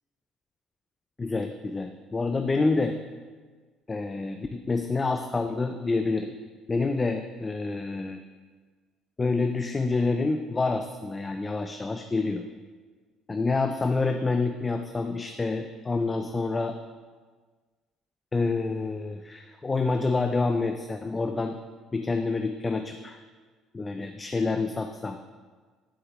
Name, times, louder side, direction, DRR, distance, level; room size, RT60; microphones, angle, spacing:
voice 1, 1.2-3.0 3.9-6.3 6.7-8.2 9.2-12.4 13.3-16.8 18.3-21.6 21.9-23.2 23.7-25.2, left 3 dB, 20° left, 6 dB, 0.3 m, -27 dB
7.3 x 6.4 x 3.0 m, 1.5 s
cardioid pair, 120°, 0 cm